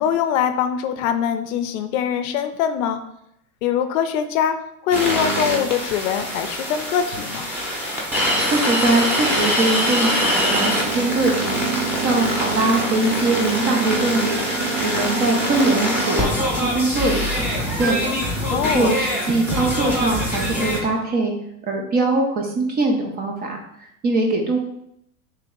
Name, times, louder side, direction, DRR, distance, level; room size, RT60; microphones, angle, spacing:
voice 1, 0.0-3.0 3.6-4.6 4.8-7.5 18.5-19.0, left 8 dB, 60° left, 8 dB, 0.5 m, -22 dB
sound 1, 4.9-20.8, equal, 5° right, 0.8 m, -24 dB
voice 2, 8.4-14.4 14.7-18.1 18.7-21.3 21.7-24.6, right 2 dB, 20° right, 1 dB, 0.4 m, -22 dB
sound 2, 9.8-16.4, right 6 dB, 55° right, 0.9 m, -30 dB
3.2 x 2.9 x 3.5 m, 0.75 s
supercardioid pair, 115°, 47 cm